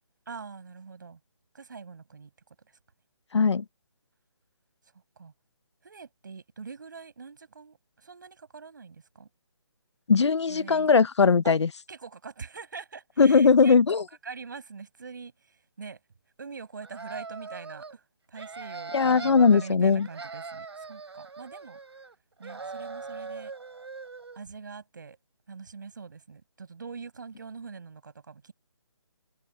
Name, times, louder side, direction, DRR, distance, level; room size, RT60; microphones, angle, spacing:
voice 1, 0.3-1.2 1.5-2.3 2.7-2.8 5.2-5.3 5.8-9.3 10.5-10.9 11.4-11.6 11.9-13.8 14.2-16.0 16.4-18.0 18.3-21.8 22.4-23.5 24.4-25.2 25.5-28.5, right 5 dB, 45° right, 7.5 m, -43 dB
voice 2, 3.3-3.6 10.1-11.7 13.2-14.0 18.9-20.1, left 5 dB, 80° left, 0.7 m, -20 dB
sound 1, 16.8-18.0 18.3-19.7 20.0-22.1 22.4-24.4, right 4 dB, 70° right, 4.0 m, -41 dB
hypercardioid pair, 180°, 14 cm